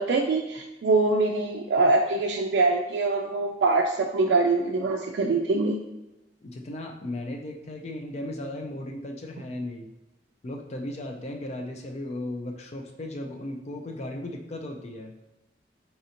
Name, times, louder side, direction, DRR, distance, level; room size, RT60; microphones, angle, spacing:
voice 1, 0.0-5.8, right 3 dB, 70° right, 2 dB, 0.3 m, -24 dB
voice 2, 6.4-9.9 10.4-15.1, left 1 dB, 40° left, 3 dB, 0.4 m, -36 dB
4.1 x 2.5 x 2.8 m, 0.98 s
head